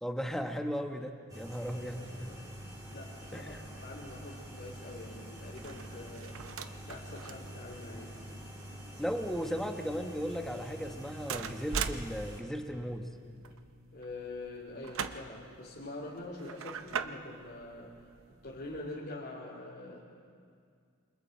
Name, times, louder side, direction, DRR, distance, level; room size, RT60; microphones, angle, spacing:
voice 1, 0.0-2.4 3.3-3.6 9.0-13.1, equal, ahead, 4 dB, 1.3 m, -36 dB
sound 1, 1.3-12.4, equal, 15° right, 5.1 m, -46 dB
voice 2, 1.5-2.5 2.9-6.4 6.8-8.3 13.9-18.0 18.4-20.0, left 2 dB, 45° left, -6 dB, 3.1 m, -45 dB
sound 2, 3.5-18.9, right 6 dB, 65° right, 0.8 m, -44 dB
28.5 x 26.0 x 4.6 m, 2.2 s
head